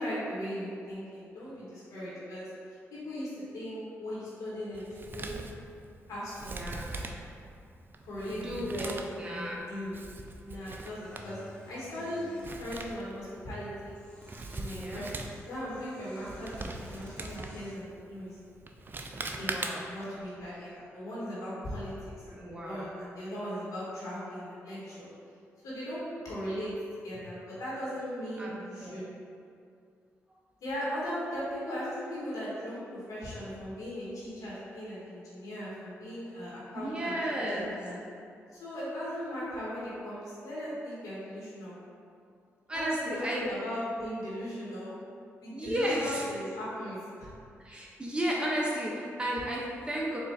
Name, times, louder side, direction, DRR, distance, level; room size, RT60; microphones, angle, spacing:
voice 1, 0.0-2.5 2.9-5.4 6.1-6.4 6.8-7.0 8.0-9.0 9.3-10.0 10.4-11.4 11.7-12.3 12.6-13.9 14.5-15.1 15.4-18.4 19.4-25.1 25.6-26.7 27.0-29.1 30.6-37.2 37.4-38.0 38.5-41.8 42.7-44.9 45.4-47.3, equal, 75° left, -8 dB, 1.3 m, -38 dB
Male speech man speaking, 4.7-20.1, right 2 dB, 35° right, 0.4 m, -42 dB
voice 2, 6.4-6.9 8.3-9.6 14.7-15.1 19.3-19.8 22.3-22.9 28.4-28.5 28.8-29.0 36.7-37.7 42.7-43.5 45.5-46.2 47.6-50.2, equal, 15° right, -4 dB, 0.8 m, -33 dB
sound 1, 11.0-12.6 13.8-14.7 15.2-17.9, left 1 dB, 15° left, 1.0 m, -53 dB
4.4 x 2.5 x 3.4 m, 2.4 s
supercardioid pair, 50°, 6 cm